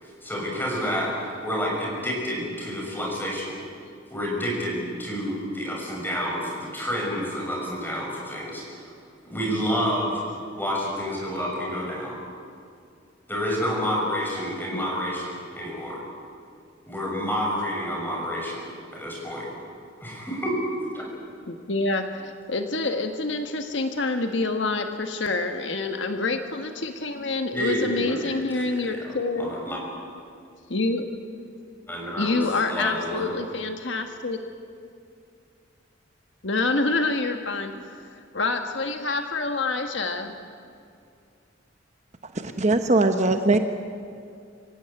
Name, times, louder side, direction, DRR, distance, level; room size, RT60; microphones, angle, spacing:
voice 1, 0.0-3.6 4.1-8.8 9.2-10.2 10.6-12.2 13.3-16.0 16.9-18.7 18.9-19.5 20.0-20.6 20.9-21.0 27.5-28.3 28.8-29.0 29.4-29.8 31.9-33.3, equal, 10° left, -2 dB, 6.5 m, -29 dB
voice 2, 21.5-29.5 30.7-31.1 32.2-34.4 36.4-40.3, left 3 dB, 65° left, 6 dB, 1.5 m, -27 dB
voice 3, 42.3-43.6, right 2 dB, 35° right, 7 dB, 1.0 m, -21 dB
25.5 x 16.5 x 9.0 m, 2.4 s
head